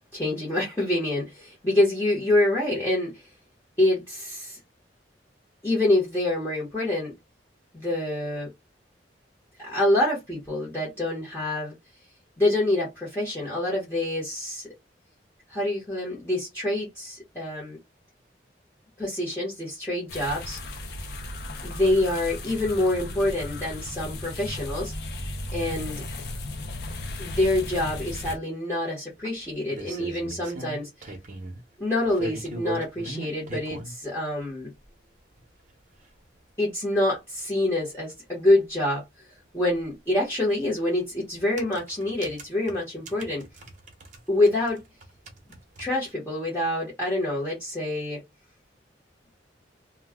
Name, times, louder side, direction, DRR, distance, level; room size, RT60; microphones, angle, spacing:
voice 1, 0.1-3.3 3.8-4.6 5.6-7.1 7.7-8.5 9.6-11.7 12.4-14.7 15.5-17.8 19.0-20.6 21.6-24.9 25.5-26.0 27.2-31.1 31.8-34.7 36.6-39.0 39.5-43.4 44.3-44.8 45.8-48.2, left 1 dB, 15° left, 1.0 m, -26 dB
sound 1, 20.1-28.4, left 1 dB, 60° left, 0.6 m, -35 dB
sound 2, 29.2-31.6 32.0-33.9 34.8-34.9 35.4-35.5 35.7-35.8 36.0-36.1 38.1-38.2 38.4-38.5 40.5-40.7 41.4-44.2 44.5-46.1, right 2 dB, 45° right, 0.7 m, -38 dB
2.3 x 2.2 x 3.5 m
head